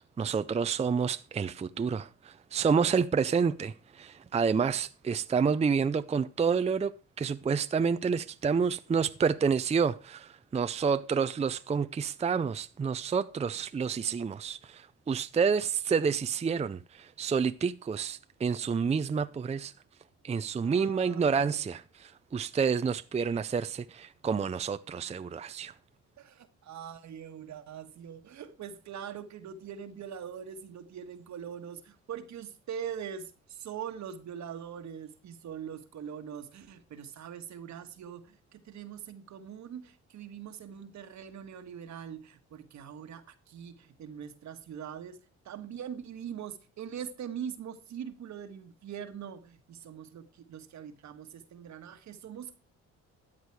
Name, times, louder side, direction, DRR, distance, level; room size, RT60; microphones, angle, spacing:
voice 1, 0.0-19.7 20.2-25.7, right 6 dB, 20° right, 0.5 m, -29 dB
voice 2, 20.6-21.6 26.2-45.2 45.4-52.6, right 8 dB, 65° right, 1.5 m, -42 dB
13.5 x 8.2 x 4.7 m
cardioid pair, 90°, 30 cm